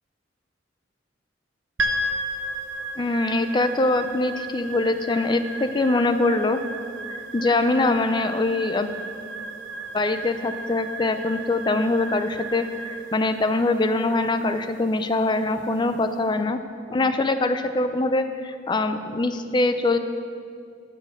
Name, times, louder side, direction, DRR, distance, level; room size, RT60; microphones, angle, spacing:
sound 1, 1.8-16.2, right 2 dB, 80° right, 0.7 m, -34 dB
voice 1, 3.0-6.6 7.1-8.9 9.9-16.6 16.9-20.0, left 2 dB, 25° left, 9 dB, 0.4 m, -23 dB
9.7 x 6.1 x 6.1 m, 2.3 s
head